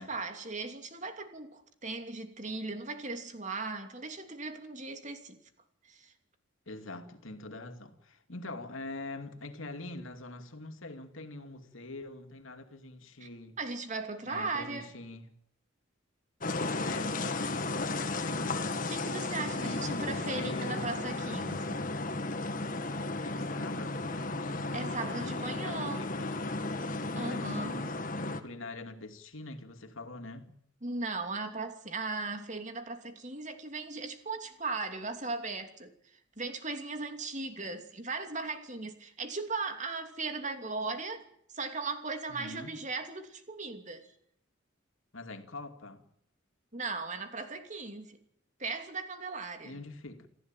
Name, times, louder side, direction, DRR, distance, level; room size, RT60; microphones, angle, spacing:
voice 1, 0.0-5.4 5.9-6.1 13.2-13.3 13.6-14.9 18.8-21.8 24.7-26.0 27.1-27.8 30.8-35.9 36.4-41.2 41.5-44.1 46.7-48.2 48.6-49.8, right 3 dB, 35° right, 2.9 m, -37 dB
voice 2, 6.7-13.5 14.2-15.3 16.8-18.8 19.4-21.0 23.2-26.6 27.2-30.5 42.3-42.7 45.1-46.0 49.6-50.3, left 2 dB, 85° left, 2.6 m, -44 dB
sound 1, 16.4-28.4, left 2 dB, 45° left, 1.8 m, -34 dB
28.0 x 15.0 x 9.1 m
head